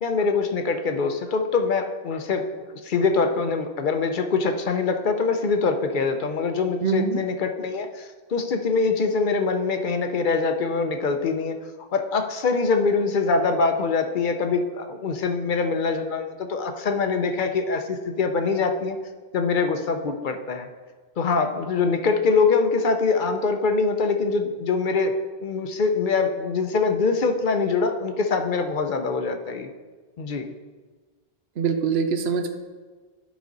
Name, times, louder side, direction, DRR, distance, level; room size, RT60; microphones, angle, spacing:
voice 1, 0.0-2.4 2.7-11.6 11.9-19.0 19.3-20.7 21.2-25.2 25.4-29.7 30.2-30.5, left 4 dB, 55° left, 6 dB, 0.7 m, -24 dB
voice 2, 6.8-7.2 31.6-32.5, right 6 dB, 80° right, 7 dB, 1.0 m, -24 dB
10.0 x 5.1 x 3.9 m, 1.4 s
omnidirectional pair, 1.0 m